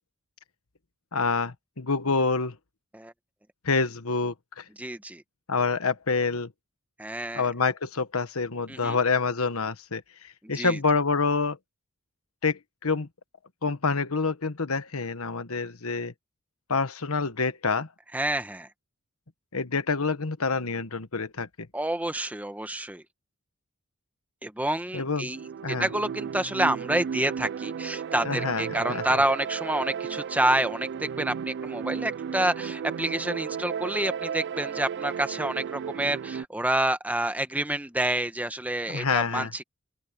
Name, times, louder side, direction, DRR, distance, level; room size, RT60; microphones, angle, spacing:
voice 1, 1.1-2.6 3.6-4.6 5.5-6.5 7.3-11.6 12.4-13.1 13.6-16.1 16.7-17.9 19.5-21.7 24.9-25.3 25.6-25.9 28.2-29.0 38.9-39.5, left 4 dB, 70° left, 1.3 m, -27 dB
voice 2, 4.8-5.2 7.0-7.5 8.7-9.0 10.4-10.8 18.1-18.7 21.7-23.0 24.4-25.4 25.8-39.6, right 1 dB, 5° right, 1.3 m, -28 dB
sound 1, 25.3-36.5, right 7 dB, 50° right, 0.3 m, -34 dB
open air
head